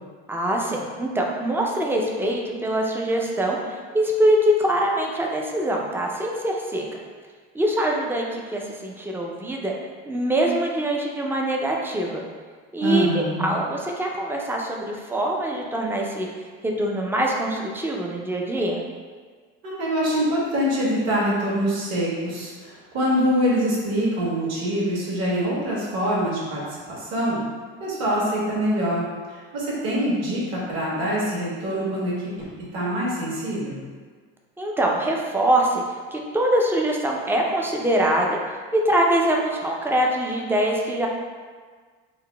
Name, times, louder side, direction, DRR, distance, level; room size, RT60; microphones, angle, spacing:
voice 1, 0.3-6.9 7.5-9.7 10.1-12.2 12.7-16.3 16.6-18.8 34.6-38.4 38.7-41.1, right 1 dB, 10° right, 0 dB, 0.3 m, -23 dB
voice 2, 12.8-13.5 19.6-27.4 27.8-32.5 32.7-33.8, equal, 60° right, -6 dB, 1.4 m, -24 dB
3.9 x 2.0 x 3.2 m, 1.6 s
supercardioid pair, 110°, 30 cm